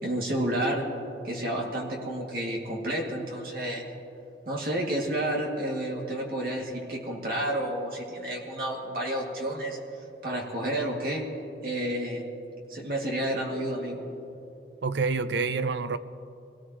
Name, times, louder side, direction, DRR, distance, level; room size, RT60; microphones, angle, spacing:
voice 1, 0.0-0.9 1.2-3.8 4.5-9.8 10.2-11.2 11.6-12.2 12.7-14.0, right 1 dB, 55° right, 2.6 m, -30 dB
voice 2, 14.8-16.0, right 4 dB, 80° right, 0.6 m, -27 dB
24.0 x 18.0 x 3.1 m
head